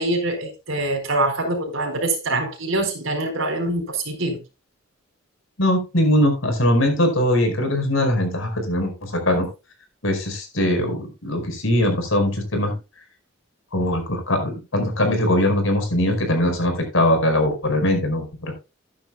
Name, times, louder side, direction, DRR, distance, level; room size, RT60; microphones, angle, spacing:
voice 1, 0.0-4.4, right 2 dB, 70° right, 4.3 m, -24 dB
voice 2, 5.6-9.5 10.0-12.8 13.7-18.5, left 1 dB, 70° left, 4.9 m, -21 dB
14.0 x 10.5 x 2.2 m
head